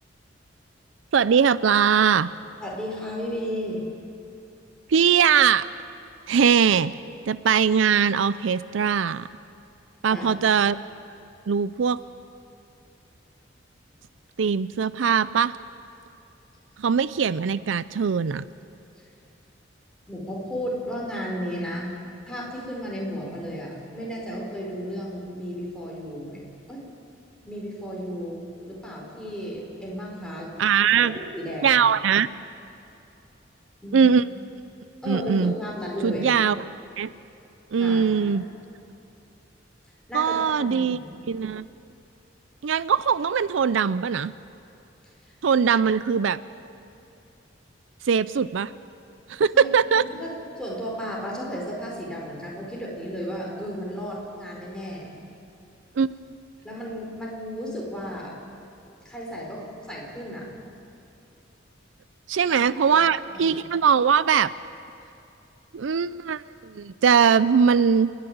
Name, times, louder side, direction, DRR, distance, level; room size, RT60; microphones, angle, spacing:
voice 1, 1.1-2.3 4.9-5.7 6.3-6.9 7.3-9.3 10.0-10.8 11.5-12.0 14.4-15.5 16.8-18.4 30.6-31.2 31.6-32.3 33.9-34.2 35.1-35.5 36.0-36.6 37.0-37.1 37.7-38.4 40.1-41.0 41.3-41.6 42.6-44.3 45.4-46.4 48.1-48.7 49.3-50.0 56.0-56.1 62.3-64.5 65.7-68.1, right 7 dB, 80° right, 16 dB, 0.4 m, -21 dB
voice 2, 2.6-3.9 10.1-10.3 17.5-17.7 19.0-19.1 20.1-21.9 22.2-26.4 26.7-26.9 27.4-30.5 31.0-31.8 33.8-34.0 35.0-36.4 37.8-38.4 40.1-41.1 45.2-45.3 49.5-49.7 50.0-55.1 56.6-58.4 59.0-60.5 62.4-63.0 63.3-63.6, equal, 5° left, -3 dB, 4.7 m, -34 dB
29.5 x 11.0 x 9.3 m, 2.7 s
head